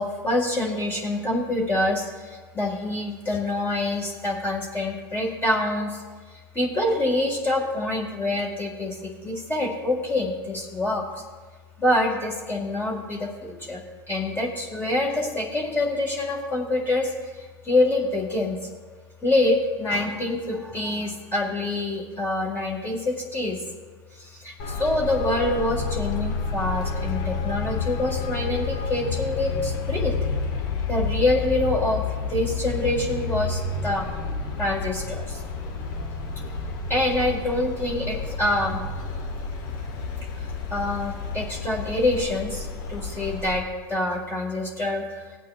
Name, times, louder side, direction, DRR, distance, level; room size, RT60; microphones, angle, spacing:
voice 1, 0.0-6.0 6.3-11.2 11.8-13.8 14.1-18.6 19.2-23.6 24.2-30.1 30.9-34.1 34.6-35.4 36.9-38.8 40.4-43.6 43.9-45.2, left 2 dB, 20° left, -2 dB, 1.8 m, -26 dB
Traffic noise roadway noise, 24.6-43.6, left 4 dB, 70° left, 1.7 m, -30 dB
18.0 x 8.4 x 2.4 m, 1.4 s
hypercardioid pair, 110°, 12 cm